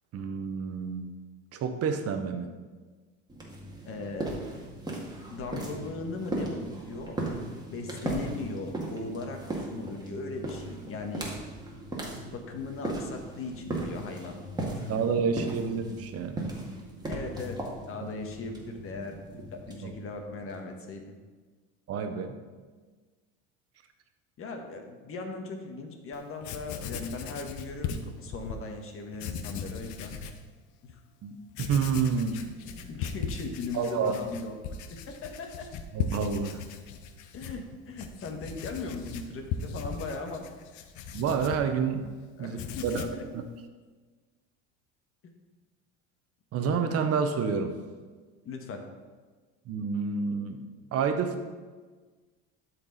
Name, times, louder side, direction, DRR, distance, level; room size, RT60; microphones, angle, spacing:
voice 1, 0.1-1.1 1.5-2.5 14.9-16.5 19.8-19.9 21.9-22.4 31.2-31.3 31.6-32.4 33.7-34.1 35.9-36.6 41.1-42.1 42.4-43.1 43.3-43.4 46.5-47.7 49.7-50.6 50.9-51.5, right 6 dB, 50° right, 7 dB, 0.9 m, -29 dB
sound 1, 3.3-20.8, right 1 dB, 10° right, 2.0 m, -37 dB
voice 2, 3.8-4.4 5.3-7.2 7.7-9.4 9.7-11.3 12.3-14.4 14.7-14.9 17.0-17.6 17.9-19.1 19.5-21.2 24.4-30.2 30.8-30.9 32.3-34.5 34.9-35.7 37.3-40.4 42.4-43.2 48.4-48.8, left 3 dB, 40° left, 4 dB, 1.5 m, -38 dB
Writing, 26.1-26.2 26.4-28.6 29.1-30.4 30.9-31.0 31.5-42.1 42.4-43.3, left 6 dB, 65° left, 0.9 m, -38 dB
12.0 x 4.6 x 4.1 m, 1.4 s
supercardioid pair, 90°, 32 cm